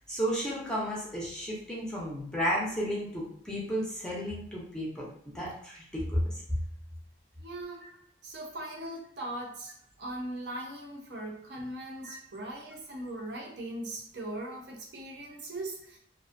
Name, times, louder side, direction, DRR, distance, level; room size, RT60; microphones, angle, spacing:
voice 1, 0.1-6.3 12.0-12.1, equal, 5° left, -5 dB, 0.4 m, -33 dB
voice 2, 7.4-7.9 8.2-16.0, right 1 dB, 60° right, -1 dB, 0.6 m, -40 dB
2.5 x 2.0 x 2.4 m, 0.65 s
head